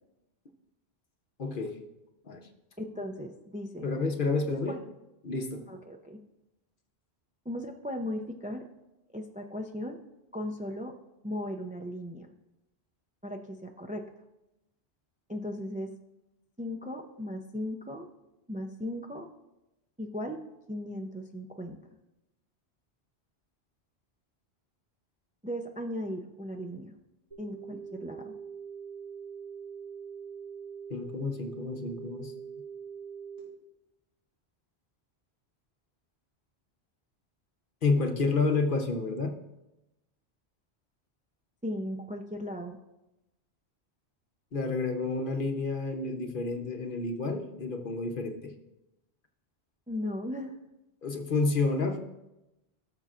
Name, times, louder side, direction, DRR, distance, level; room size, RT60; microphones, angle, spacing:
voice 1, 1.4-1.8 2.2-2.4 3.8-4.7 5.2-5.7 30.9-32.3 37.8-39.4 44.5-48.5 51.0-52.0, left 3 dB, 55° left, 4 dB, 1.0 m, -30 dB
voice 2, 2.8-3.9 4.5-4.8 5.7-6.2 7.5-8.6 9.1-10.0 10.3-10.9 11.2-12.3 13.2-14.0 15.3-15.9 16.6-18.1 18.5-19.3 20.0-20.4 20.7-21.8 25.4-26.9 27.4-28.3 41.6-42.8 49.9-50.6, left 1 dB, 10° right, 4 dB, 0.4 m, -37 dB
sound 1, 27.3-33.4, right 7 dB, 35° right, 4.2 m, -43 dB
17.5 x 6.8 x 2.5 m, 0.95 s
omnidirectional pair, 1.1 m